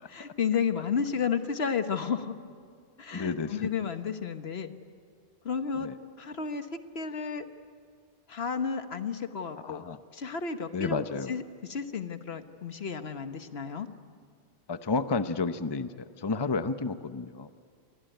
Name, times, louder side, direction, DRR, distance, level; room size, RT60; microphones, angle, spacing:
voice 1, 0.1-2.4 3.0-4.7 5.4-5.9 6.2-6.7 6.9-7.4 8.3-9.8 10.1-11.4 11.7-13.9, left 6 dB, 70° left, 9 dB, 1.5 m, -32 dB
voice 2, 3.1-3.7 5.8-6.0 9.6-10.0 10.7-11.3 14.7-17.5, left 4 dB, 25° left, 10 dB, 0.7 m, -31 dB
28.0 x 23.0 x 9.1 m, 2.1 s
omnidirectional pair, 1.1 m